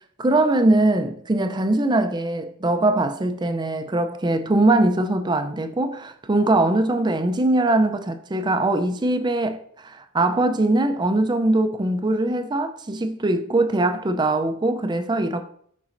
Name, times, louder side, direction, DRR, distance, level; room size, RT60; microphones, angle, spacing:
voice 1, 0.2-9.6 9.8-15.4, right 2 dB, 20° right, 0.5 m, -21 dB
7.1 x 5.3 x 2.6 m
head